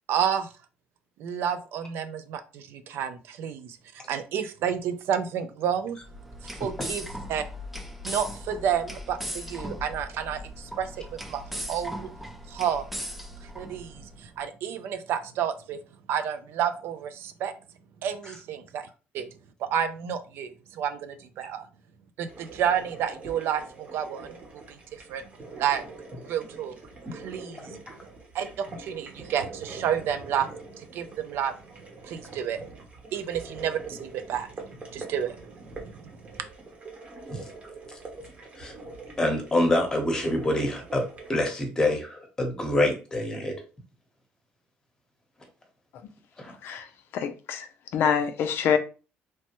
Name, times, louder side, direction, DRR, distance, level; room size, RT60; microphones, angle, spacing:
voice 1, 0.1-0.5 1.2-3.8 4.1-6.0 6.4-7.4 8.0-12.1 12.5-12.9 13.6-15.8 16.1-17.5 18.0-18.9 19.1-19.3 19.6-21.7 22.2-25.2 25.6-25.8 26.3-26.8 27.1-27.7 28.3-31.5 32.0-32.6 33.1-34.5 34.9-35.3 35.8-35.9, right 9 dB, 70° right, 0.4 m, -30 dB
sound 1, 6.0-14.2, equal, 5° right, 0.4 m, -38 dB
sound 2, 22.3-41.4, right 3 dB, 30° right, 0.9 m, -44 dB
voice 2, 39.2-41.0 41.3-43.5 46.4-46.5, left 1 dB, 15° left, 0.9 m, -26 dB
voice 3, 46.6-48.8, left 7 dB, 60° left, 0.4 m, -26 dB
3.1 x 2.1 x 2.9 m
cardioid pair, 115°, 4 cm